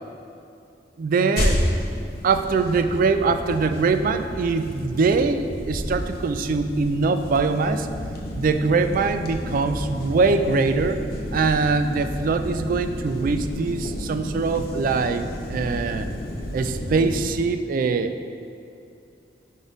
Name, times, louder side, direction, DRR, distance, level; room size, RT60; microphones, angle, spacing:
voice 1, 1.0-1.6 2.2-7.9 8.4-11.0 11.3-16.1 16.5-18.2, right 4 dB, 50° right, 9 dB, 0.3 m, -22 dB
sound 1, 1.4-17.3, left 1 dB, 60° left, 0.8 m, -31 dB
5.4 x 4.0 x 4.9 m, 2.5 s
head